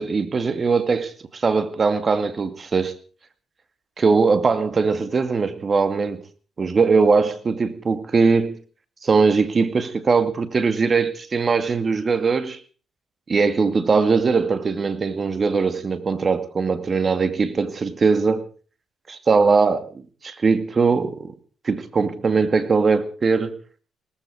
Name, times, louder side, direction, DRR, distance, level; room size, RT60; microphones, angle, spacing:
voice 1, 0.0-2.9 4.0-6.2 6.6-8.6 9.0-12.6 13.3-18.4 19.3-21.3 21.6-23.6, right 4 dB, 35° right, 2.2 m, -20 dB
19.0 x 15.0 x 5.0 m
cardioid pair, 90°, 0 cm